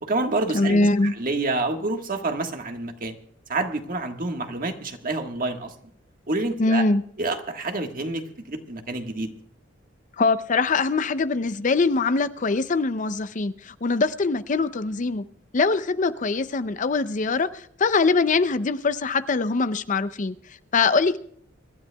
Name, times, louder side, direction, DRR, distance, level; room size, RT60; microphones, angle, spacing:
voice 1, 0.0-3.2 3.5-5.7 6.3-6.8 7.2-9.3, right 2 dB, 45° right, 5 dB, 1.5 m, -28 dB
voice 2, 0.5-1.1 6.6-7.0 10.2-15.2 15.5-20.4 20.7-21.2, left 3 dB, 40° left, 13 dB, 0.5 m, -23 dB
25.5 x 12.5 x 2.3 m, 0.63 s
head